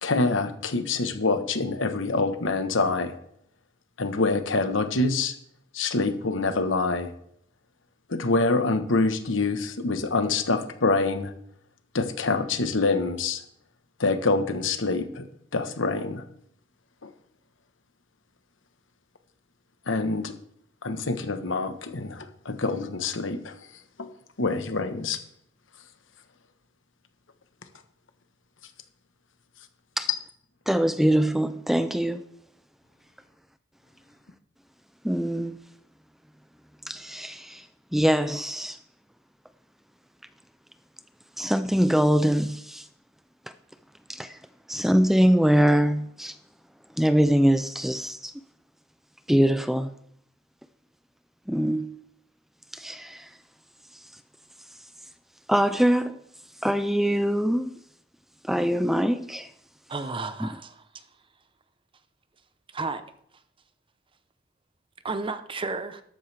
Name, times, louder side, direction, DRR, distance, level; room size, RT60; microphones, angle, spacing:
voice 1, 0.0-3.1 4.0-5.3 5.7-7.1 8.1-11.3 11.9-13.4 14.0-15.2 15.5-16.2 17.0-17.1 19.9-20.3 20.8-23.5 24.0-24.1 24.4-25.2, left 3 dB, 80° left, 1.2 m, -26 dB
voice 2, 30.7-32.3 35.0-35.6 36.9-37.7 37.9-38.8 41.4-42.9 44.1-44.4 44.7-46.4 47.0-48.3 49.3-49.9 51.5-52.0 52.7-53.3 55.5-56.2 56.6-57.8 58.4-59.5 60.4-60.5, equal, ahead, 0.4 m, -23 dB
voice 3, 59.9-61.1 62.7-63.0 65.0-66.0, right 3 dB, 25° right, 0.8 m, -32 dB
13.0 x 12.5 x 3.4 m
head